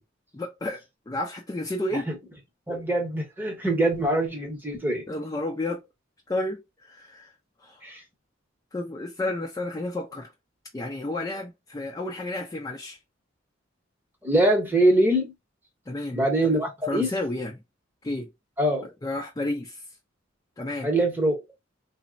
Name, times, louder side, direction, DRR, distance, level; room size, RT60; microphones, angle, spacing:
voice 1, 0.3-2.1 5.1-5.9 6.3-7.3 7.6-7.8 8.7-10.3 10.7-13.0 15.9-16.3 16.8-17.6 18.0-18.3 19.0-19.8 20.6-20.9, left 2 dB, 20° left, 0.4 m, -31 dB
voice 2, 2.7-5.0 7.8-8.0 14.2-15.3 16.1-17.1 18.6-18.9 20.8-21.3, right 1 dB, 10° right, 0.8 m, -23 dB
3.1 x 2.0 x 2.5 m
head